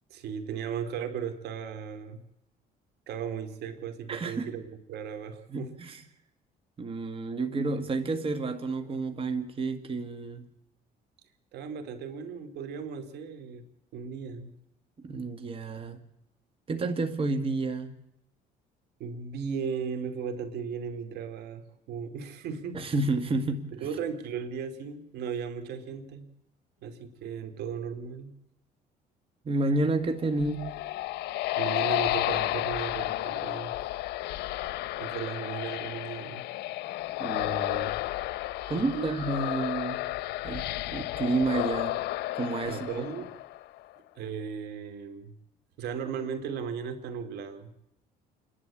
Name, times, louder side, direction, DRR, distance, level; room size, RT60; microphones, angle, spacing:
voice 1, 0.1-2.2 3.1-5.7 11.5-13.6 13.9-14.5 19.0-22.8 23.8-26.3 26.8-28.3 31.6-33.7 35.0-36.4 38.7-39.2 42.7-43.3 44.2-45.3 45.8-47.7, right 7 dB, 75° right, 9 dB, 2.7 m, -36 dB
voice 2, 4.1-4.5 5.5-6.0 6.8-10.5 15.0-16.0 16.7-17.9 22.7-23.6 29.5-30.7 37.2-37.9 38.7-40.0 40.4-42.0 42.3-43.0, right 3 dB, 35° right, 7 dB, 1.9 m, -30 dB
sound 1, 30.2-43.8, left 16 dB, 80° left, 0.7 m, -32 dB
28.5 x 11.5 x 8.7 m, 0.83 s
cardioid pair, 110°, 17 cm